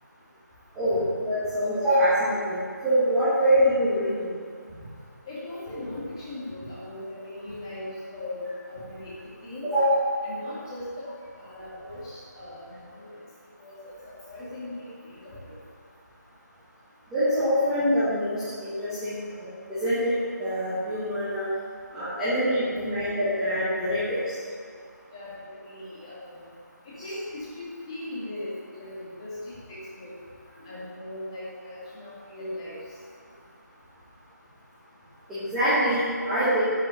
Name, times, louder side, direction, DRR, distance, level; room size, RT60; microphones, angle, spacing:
voice 1, 0.7-4.3 9.6-10.0 17.1-19.2 19.7-21.5 21.9-24.2 35.3-36.6, equal, 5° right, -18 dB, 1.5 m, -24 dB
voice 2, 5.3-9.2 9.4-9.7 10.2-11.1 11.3-13.1 13.6-13.9 14.2-15.5 22.1-22.3 25.1-26.4 27.0-30.1 30.6-32.8, left 1 dB, 15° left, -9 dB, 2.4 m, -39 dB
11.5 x 6.1 x 8.7 m, 2.1 s
figure-of-eight pair, 175°, 10 cm